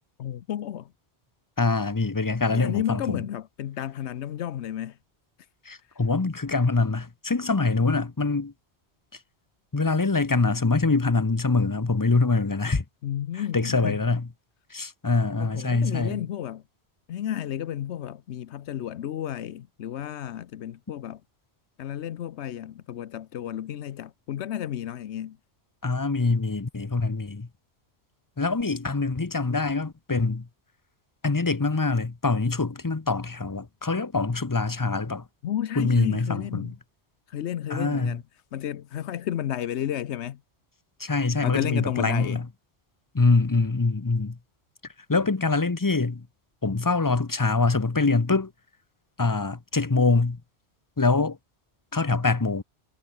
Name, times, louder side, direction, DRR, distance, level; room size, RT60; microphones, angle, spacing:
voice 1, 0.2-0.9 2.5-5.0 5.9-6.0 13.0-14.0 15.4-16.6 17.1-21.2 21.8-25.4 35.4-36.8 37.3-38.2 38.5-40.4 41.4-42.4, left 10 dB, 85° left, 1.0 m, -32 dB
voice 2, 1.6-3.2 5.7-8.5 9.7-12.8 13.3-14.3 14.7-16.2 25.8-27.5 28.4-30.5 31.2-35.2 35.8-36.7 37.7-38.2 41.0-42.4 43.1-44.4 45.1-46.3 46.6-48.5 49.2-50.4 51.0-51.4 51.9-52.6, left 3 dB, 20° left, 0.7 m, -24 dB
omnidirectional pair, 1.1 m